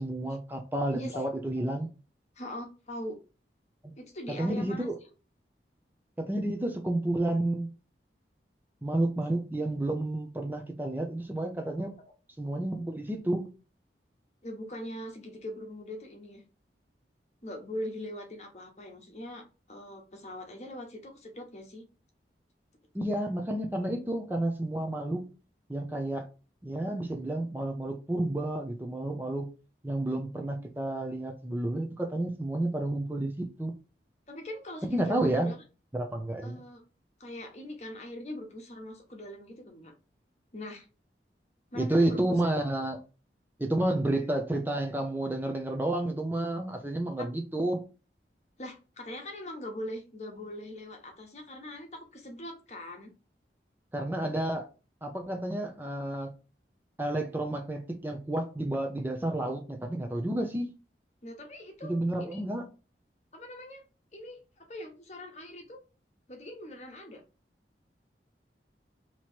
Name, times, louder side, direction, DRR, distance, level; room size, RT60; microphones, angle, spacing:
voice 1, 0.0-1.9 4.3-5.0 6.2-7.7 8.8-11.9 12.4-13.5 22.9-25.3 25.7-26.3 26.6-29.5 29.8-33.7 34.8-35.5 35.9-36.6 41.7-43.0 43.6-47.8 53.9-54.7 55.0-56.3 57.0-60.7 61.8-62.7, right 1 dB, 10° right, 0.5 m, -30 dB
voice 2, 0.9-1.3 2.3-3.2 4.0-4.9 14.4-16.4 17.4-21.8 34.3-35.6 36.4-36.8 37.2-39.9 40.5-40.9 41.7-42.3 47.2-47.3 48.6-53.1 61.2-62.4 63.3-63.8 64.1-65.8 66.3-67.2, left 1 dB, 40° left, 1.0 m, -41 dB
3.0 x 2.9 x 4.3 m
head